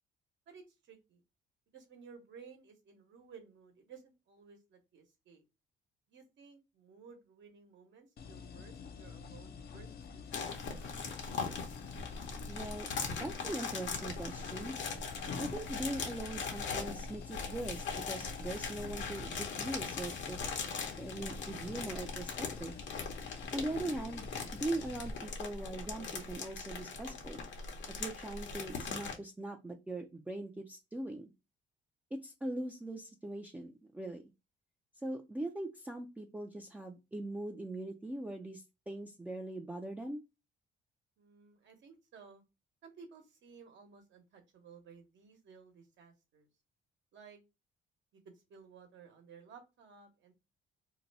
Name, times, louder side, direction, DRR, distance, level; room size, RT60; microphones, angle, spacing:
voice 1, 0.5-1.2 1.7-5.4 6.1-10.8 41.2-42.4 42.8-46.5 47.1-47.4 48.1-50.3, right 6 dB, 70° right, 4 dB, 1.0 m, -56 dB
sound 1, 8.2-25.1, left 6 dB, 50° left, 0.5 m, -48 dB
sound 2, 10.3-29.2, left 5 dB, 70° left, 0.9 m, -40 dB
voice 2, 12.5-14.8 15.4-20.4 21.0-22.8 23.5-24.3 24.5-27.4 28.0-31.3 32.1-34.2 35.0-40.2, right 1 dB, 10° right, 2 dB, 0.4 m, -41 dB
2.7 x 2.2 x 3.9 m, 0.26 s
cardioid pair, 90°, 20 cm